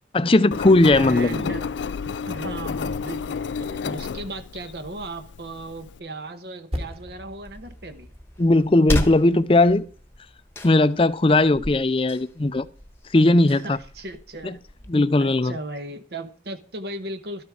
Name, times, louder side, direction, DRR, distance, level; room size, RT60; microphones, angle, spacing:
voice 1, 0.1-1.4 8.4-9.8 10.6-12.7 13.1-13.8 14.4-14.5 14.9-15.5, left 2 dB, 30° left, 0.5 m, -18 dB
Engine, 0.5-6.0, left 5 dB, 85° left, 0.4 m, -31 dB
voice 2, 0.9-1.7 2.3-8.1 13.5-14.6 15.2-17.4, right 2 dB, 60° right, 1.1 m, -36 dB
Percussion, 6.7-11.6, equal, 30° right, 1.9 m, -40 dB
sound 1, 7.4-14.9, left 1 dB, 15° left, 1.1 m, -34 dB
13.0 x 7.1 x 4.8 m
head